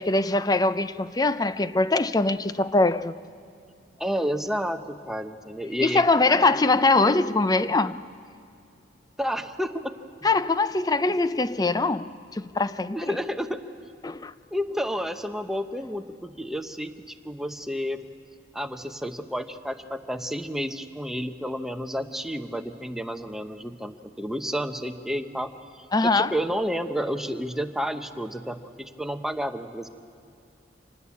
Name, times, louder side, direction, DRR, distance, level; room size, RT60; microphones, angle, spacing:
voice 1, 0.0-3.2 5.8-8.0 10.2-13.2 14.0-14.3 25.9-26.3, left 3 dB, 20° left, 0.5 m, -22 dB
voice 2, 4.0-6.5 9.2-10.0 12.9-13.6 14.5-18.0 18.5-29.9, equal, ahead, 0.9 m, -31 dB
26.5 x 19.5 x 8.5 m
head